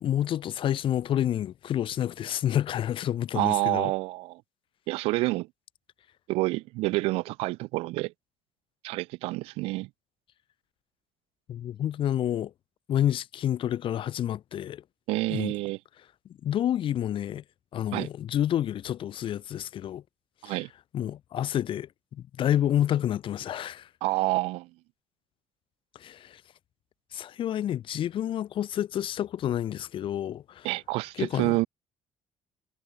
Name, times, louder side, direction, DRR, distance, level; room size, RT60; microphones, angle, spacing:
voice 1, 0.0-3.9 11.5-12.5 12.9-14.8 15.3-15.5 16.4-17.4 17.7-20.0 20.5-20.6 20.9-23.9 26.0-26.4 27.1-30.7 31.2-31.5, left 11 dB, 60° left, 3.6 m, -29 dB
voice 2, 3.3-4.4 4.9-5.5 6.3-8.1 8.8-9.9 15.1-15.8 17.9-18.1 20.4-20.7 24.0-24.7 30.6-31.7, right 21 dB, 90° right, 2.4 m, -28 dB
cardioid pair, 95°, 10 cm